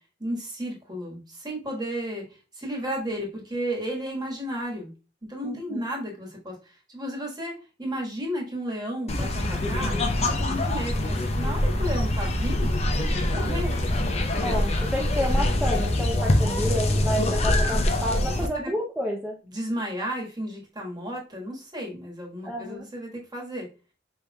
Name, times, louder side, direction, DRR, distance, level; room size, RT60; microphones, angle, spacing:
voice 1, 0.2-2.2 2.5-4.9 5.3-6.5 6.9-10.0 10.4-13.7 16.4-16.7 18.5-18.7 19.5-23.7, equal, 25° right, -1 dB, 1.5 m, -33 dB
voice 2, 5.4-5.9 14.4-19.4 22.4-22.9, equal, 5° right, -3 dB, 0.6 m, -30 dB
sound 1, 9.1-18.5, left 1 dB, 35° left, 0.6 m, -24 dB
5.1 x 4.3 x 2.3 m, 0.32 s
head